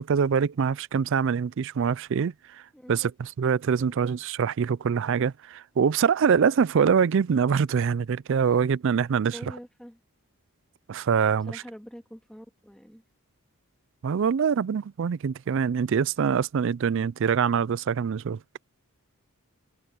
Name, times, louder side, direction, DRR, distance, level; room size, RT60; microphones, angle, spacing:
voice 1, 0.0-2.6 2.9-9.4 10.9-11.6 14.0-18.4, right 6 dB, 55° right, 0.4 m, -24 dB
voice 2, 9.3-10.0 11.5-13.0, equal, 5° left, 2.5 m, -45 dB
head